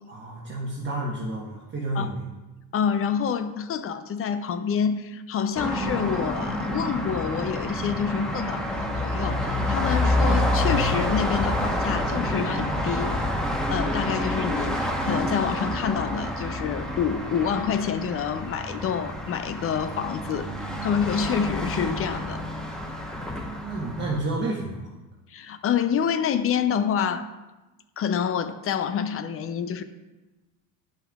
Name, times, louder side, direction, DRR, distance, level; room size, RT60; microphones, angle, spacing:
voice 1, 0.1-2.2 14.9-15.1 23.5-24.9, right 2 dB, 25° right, -4 dB, 1.1 m, -31 dB
voice 2, 2.7-13.2 13.7-22.4 25.3-27.3 28.0-29.8, left 7 dB, 35° left, 11 dB, 0.4 m, -27 dB
sound 1, 5.5-24.2, left 1 dB, ahead, 1.0 m, -28 dB
10.0 x 5.6 x 2.3 m, 1.1 s
supercardioid pair, 85°, 44 cm